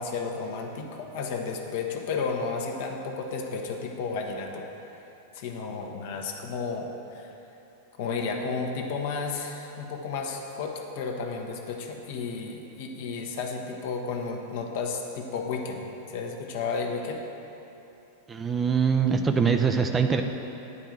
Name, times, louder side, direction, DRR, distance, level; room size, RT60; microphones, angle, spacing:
voice 1, 0.0-4.7 5.3-7.3 8.0-17.2, left 4 dB, 50° left, 2 dB, 1.0 m, -32 dB
voice 2, 18.3-20.2, right 6 dB, 15° right, 5 dB, 0.5 m, -23 dB
9.7 x 4.6 x 7.6 m, 3.0 s
figure-of-eight pair, 90°, 0 cm